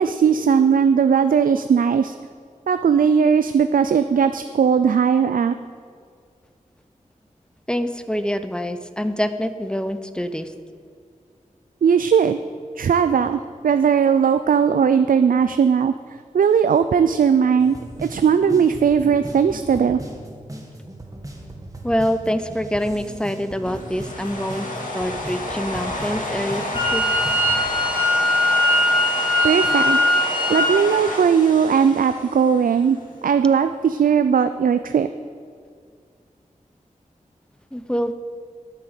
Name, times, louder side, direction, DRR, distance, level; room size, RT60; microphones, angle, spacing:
voice 1, 0.0-2.2 2.7-5.5 11.8-12.4 12.8-20.0 29.4-30.0 30.5-33.0 33.2-35.1, right 7 dB, 85° right, 10 dB, 0.4 m, -18 dB
voice 2, 7.7-10.5 21.8-24.7 24.9-27.0 37.7-38.1, equal, 5° left, 10 dB, 0.7 m, -25 dB
sound 1, 17.6-27.6, right 1 dB, 25° right, 1.9 m, -38 dB
sound 2, 23.6-32.9, left 1 dB, 70° left, 2.1 m, -30 dB
Wind instrument woodwind instrument, 26.7-30.7, left 1 dB, 40° left, 2.2 m, -20 dB
11.0 x 8.8 x 6.5 m, 2.1 s
wide cardioid pair, 70°, 14 cm